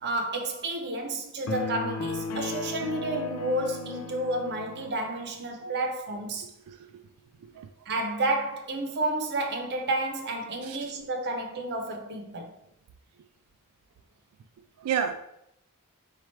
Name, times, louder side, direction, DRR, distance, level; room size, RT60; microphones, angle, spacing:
voice 1, 0.0-6.5 7.9-12.5, right 2 dB, 50° right, 0.7 m, -31 dB
sound 1, 1.5-5.0, left 3 dB, 85° left, 0.5 m, -35 dB
voice 2, 10.6-10.9 14.8-15.1, right 8 dB, 85° right, 0.3 m, -31 dB
4.3 x 2.4 x 4.5 m
head